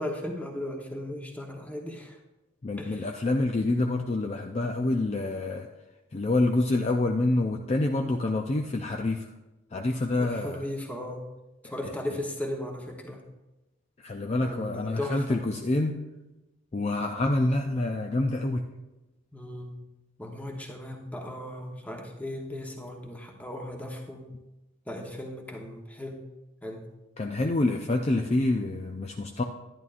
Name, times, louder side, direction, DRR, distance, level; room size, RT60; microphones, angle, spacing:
voice 1, 0.0-2.2 2.8-3.1 10.2-11.3 11.6-13.2 14.4-15.4 19.3-19.8 20.2-24.2 24.9-26.2 26.6-26.8, left 1 dB, 5° left, 1 dB, 1.0 m, -36 dB
voice 2, 2.6-5.7 6.1-9.3 9.7-10.7 11.8-12.0 14.0-16.0 16.7-18.7 27.2-29.4, left 2 dB, 30° left, 3 dB, 0.4 m, -27 dB
11.0 x 11.0 x 2.5 m, 1.0 s
head